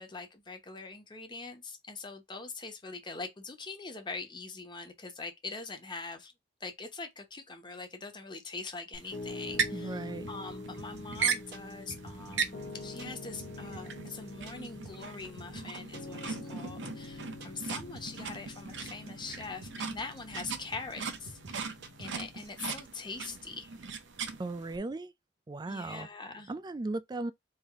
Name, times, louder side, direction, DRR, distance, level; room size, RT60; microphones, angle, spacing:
voice 1, 0.0-6.3 6.6-23.7 25.7-26.5, left 4 dB, 25° left, 0.9 m, -43 dB
sound 1, 8.9-24.8, right 6 dB, 85° right, 0.8 m, -39 dB
Piano, 9.1-22.5, left 2 dB, 60° left, 0.8 m, -46 dB
voice 2, 9.7-10.3 24.4-25.1 25.5-26.1 26.5-27.3, right 2 dB, 25° right, 0.4 m, -36 dB
sound 2, 10.8-22.5, right 3 dB, 65° right, 1.1 m, -50 dB
3.5 x 2.7 x 3.5 m
head